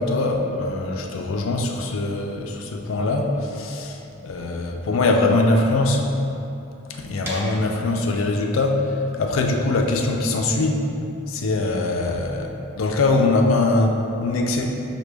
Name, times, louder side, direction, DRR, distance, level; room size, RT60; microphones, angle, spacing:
voice 1, 0.0-6.1 6.9-10.9 11.3-14.7, left 2 dB, 75° left, 3 dB, 0.4 m, -22 dB
sound 1, 7.3-13.0, equal, 10° right, 0.6 m, -41 dB
5.9 x 2.2 x 3.3 m, 2.7 s
head